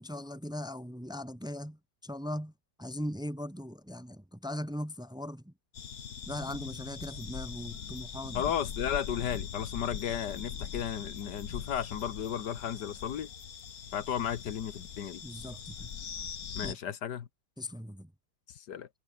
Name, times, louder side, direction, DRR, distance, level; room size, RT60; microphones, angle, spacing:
voice 1, 0.0-2.5 2.8-5.5 6.3-8.4 15.2-15.9 16.6-16.8 17.6-18.1, left 1 dB, 5° right, 0.3 m, -39 dB
sound 1, 5.7-16.7, left 7 dB, 60° left, 1.9 m, -41 dB
voice 2, 8.3-13.3 13.9-15.2 16.5-17.3 18.5-18.9, left 9 dB, 85° left, 1.9 m, -34 dB
omnidirectional pair, 1.8 m